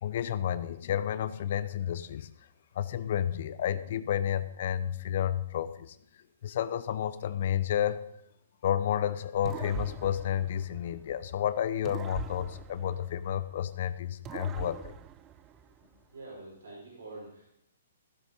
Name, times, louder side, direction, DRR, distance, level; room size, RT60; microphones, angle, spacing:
voice 1, 0.0-2.3 2.8-5.9 6.4-8.1 8.6-14.9, left 10 dB, 55° left, 15 dB, 0.7 m, -31 dB
sound 1, 9.5-11.3 11.9-13.7 14.2-16.0, right 10 dB, 25° right, 0.4 m, -43 dB
voice 2, 16.1-17.5, right 2 dB, 75° right, -4 dB, 5.3 m, -46 dB
15.0 x 8.1 x 5.3 m, 0.75 s
hypercardioid pair, 130°, 0 cm